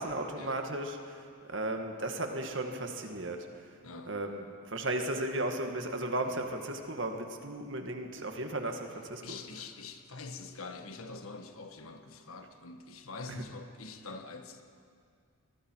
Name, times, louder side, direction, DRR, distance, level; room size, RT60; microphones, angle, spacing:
voice 1, 0.0-3.5 4.1-9.4 13.3-13.5, right 1 dB, 55° right, 4 dB, 1.9 m, -35 dB
voice 2, 3.8-4.2 9.2-14.6, left 3 dB, 75° left, 6 dB, 1.5 m, -45 dB
25.5 x 22.0 x 4.7 m, 2.2 s
head